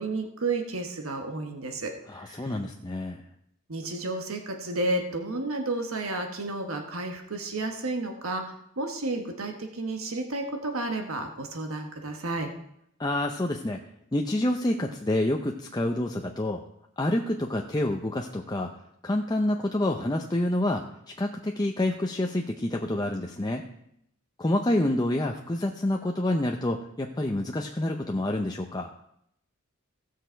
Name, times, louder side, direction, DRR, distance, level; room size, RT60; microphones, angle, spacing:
voice 1, 0.0-2.6 3.7-12.5, right 2 dB, 90° right, 4 dB, 1.4 m, -32 dB
voice 2, 2.1-3.2 13.0-13.8 14.1-16.6 17.0-18.7 19.0-20.8 21.2-23.6 24.4-28.9, left 1 dB, 20° left, 2 dB, 0.6 m, -28 dB
17.0 x 6.6 x 4.5 m, 0.76 s
head